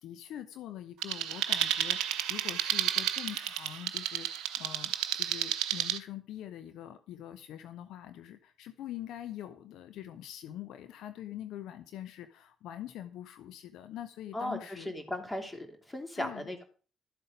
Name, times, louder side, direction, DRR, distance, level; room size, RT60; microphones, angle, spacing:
voice 1, 0.0-14.9 16.1-16.5, left 12 dB, 65° left, 10 dB, 0.8 m, -44 dB
sound 1, 1.0-6.0, right 11 dB, 65° right, 0.8 m, -31 dB
voice 2, 14.3-16.6, left 1 dB, 15° left, 5 dB, 3.1 m, -37 dB
12.5 x 7.8 x 5.1 m, 0.41 s
figure-of-eight pair, 45°, 0 cm